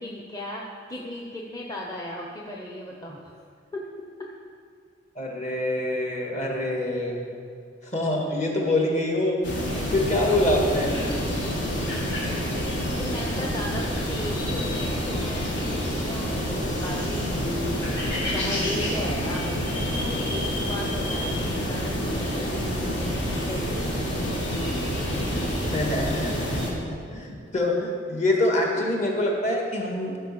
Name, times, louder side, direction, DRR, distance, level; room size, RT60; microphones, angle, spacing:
voice 1, 0.0-3.3 3.7-3.8 12.9-23.7, left 1 dB, 20° left, -2 dB, 0.9 m, -36 dB
voice 2, 5.2-7.3 7.9-9.4 9.9-10.9 25.7-30.2, left 1 dB, 40° left, 0 dB, 1.9 m, -25 dB
sound 1, 9.4-26.7, equal, 65° left, 2.4 m, -28 dB
14.0 x 5.2 x 6.9 m, 2.3 s
head